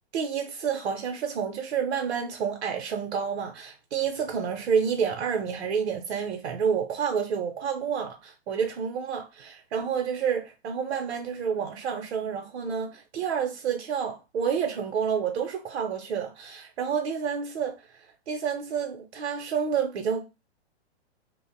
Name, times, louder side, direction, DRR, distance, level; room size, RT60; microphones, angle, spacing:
voice 1, 0.1-17.8 18.3-20.2, right 7 dB, 70° right, 0.6 m, -29 dB
2.6 x 2.0 x 2.5 m
hypercardioid pair, 120°, 34 cm